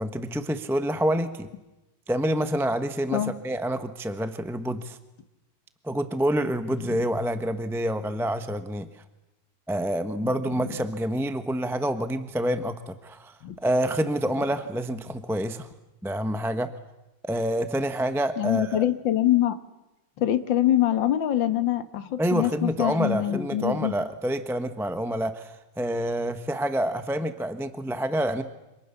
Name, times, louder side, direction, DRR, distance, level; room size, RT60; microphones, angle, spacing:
voice 1, 0.0-1.5 2.1-5.0 5.8-8.9 9.7-15.7 16.0-16.7 17.2-18.9 22.2-28.4, right 1 dB, ahead, 9 dB, 0.9 m, -27 dB
voice 2, 18.4-19.6 20.2-23.9, left 12 dB, 70° left, 9 dB, 2.1 m, -24 dB
29.0 x 26.5 x 7.2 m, 1.0 s
omnidirectional pair, 2.1 m